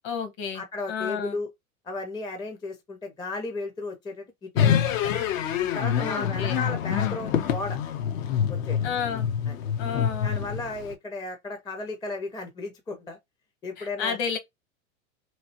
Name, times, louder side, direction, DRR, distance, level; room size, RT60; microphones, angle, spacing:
voice 1, 0.0-1.4 6.0-6.6 8.8-9.3 9.8-10.5 13.8-14.4, left 6 dB, 50° left, 1.2 m, -31 dB
voice 2, 0.5-1.5 1.8-5.3 5.7-7.8 8.5-8.8 9.5-9.6 10.2-13.2 13.6-14.2, left 3 dB, 10° left, 0.5 m, -35 dB
sound 1, 4.6-10.9, left 8 dB, 70° left, 0.8 m, -26 dB
3.1 x 2.6 x 2.8 m
hypercardioid pair, 110°, 42 cm